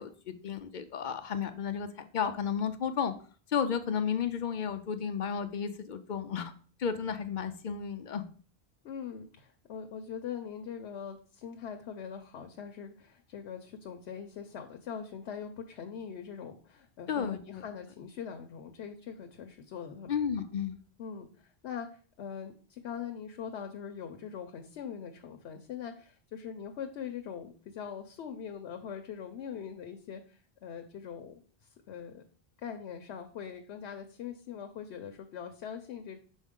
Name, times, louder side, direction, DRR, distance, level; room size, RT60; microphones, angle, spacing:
voice 1, 0.0-1.9 2.1-3.1 3.5-6.5 6.8-8.2 17.1-17.6 20.1-20.8, left 7 dB, 55° left, 10 dB, 0.6 m, -33 dB
voice 2, 8.8-20.1 21.0-31.3 31.6-32.2 32.6-36.2, left 7 dB, 85° left, 5 dB, 0.9 m, -42 dB
6.3 x 4.1 x 3.6 m, 0.42 s
omnidirectional pair, 1.1 m